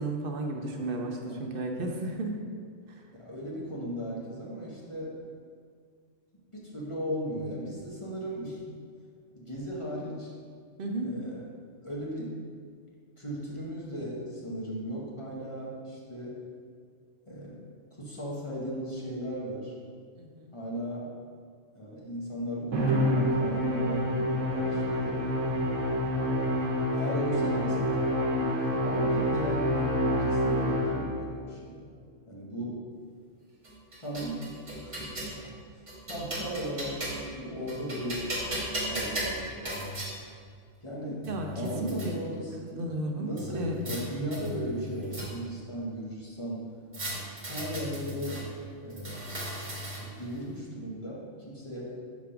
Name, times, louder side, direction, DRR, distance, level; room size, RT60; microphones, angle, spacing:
voice 1, 0.0-2.3 2.9-3.0 10.8-11.2 20.2-20.6 41.2-42.1 42.8-43.8, right 2 dB, 60° right, 2 dB, 0.7 m, -34 dB
voice 2, 1.3-1.6 3.1-5.2 6.5-8.6 9.3-10.3 11.0-11.4 11.8-12.4 13.2-16.4 17.3-17.6 18.0-19.8 20.5-21.1 21.7-25.3 26.2-26.5 26.9-31.8 32.3-32.8 34.0-34.5 34.8-35.2 36.1-38.3 38.9-39.6 40.8-41.3 41.6-42.8 43.1-46.7 47.5-48.4 48.8-49.2 50.0-52.0, equal, 25° left, -5 dB, 1.0 m, -36 dB
Musical instrument, 22.7-31.3, equal, 85° right, 1.2 m, -27 dB
sound 1, 33.6-35.4 35.9-37.3 37.7-40.1 40.9-41.0 41.2-42.1 43.4-44.0 44.3-45.6 46.9-48.4 48.9-50.2, right 1 dB, 35° right, 1.5 m, -36 dB
5.1 x 3.5 x 5.7 m, 2.1 s
omnidirectional pair, 1.3 m